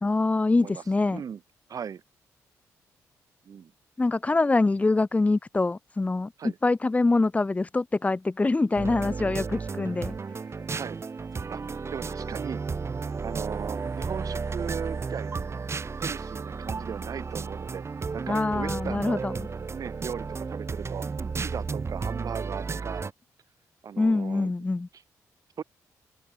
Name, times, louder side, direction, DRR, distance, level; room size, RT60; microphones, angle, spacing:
voice 1, 0.0-1.2 4.0-10.1 18.3-19.5 24.0-24.9, left 3 dB, 20° left, 0.6 m, -25 dB
voice 2, 0.6-1.4 1.7-2.0 3.5-3.7 6.4-6.6 10.7-11.0 11.3-12.6 13.0-15.6 16.0-17.8 18.1-19.2 19.7-21.1 21.4-23.0 23.8-24.5 25.6-25.7, right 7 dB, 60° right, 1.9 m, -38 dB
sound 1, 8.8-23.1, right 4 dB, 40° right, 2.5 m, -33 dB
open air
supercardioid pair, 60°, 7 cm